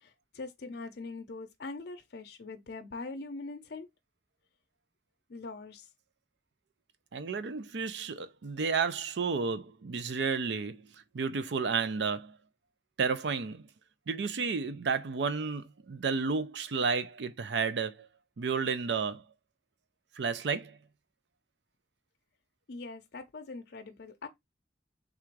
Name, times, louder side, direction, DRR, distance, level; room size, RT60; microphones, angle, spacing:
voice 1, 0.0-3.9 5.3-5.9 22.7-24.3, left 3 dB, 65° left, 0.6 m, -42 dB
voice 2, 7.1-12.4 13.0-13.7 14.1-18.1 18.4-19.2 20.2-20.8, right 5 dB, 70° right, 0.5 m, -32 dB
3.7 x 2.5 x 4.5 m
head